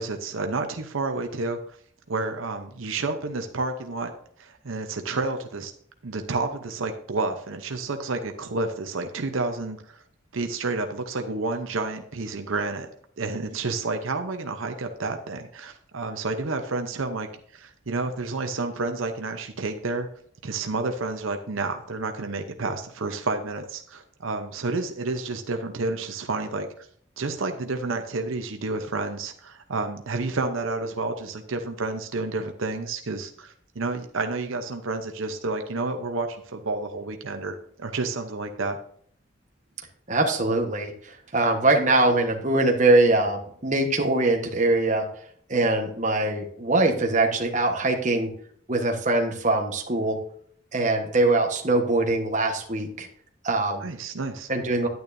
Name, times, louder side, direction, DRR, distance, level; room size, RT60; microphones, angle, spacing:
voice 1, 0.0-1.6 2.1-4.1 4.4-5.7 6.0-10.0 10.3-12.9 13.2-17.3 17.5-20.1 20.4-26.7 27.2-38.8 53.8-54.5, right 3 dB, 80° right, 6 dB, 0.8 m, -30 dB
voice 2, 40.1-45.1 45.5-48.3 48.7-50.2 50.7-53.1 53.4-53.9 54.5-54.9, right 2 dB, 35° right, 2 dB, 1.2 m, -22 dB
10.5 x 9.4 x 2.7 m, 0.62 s
head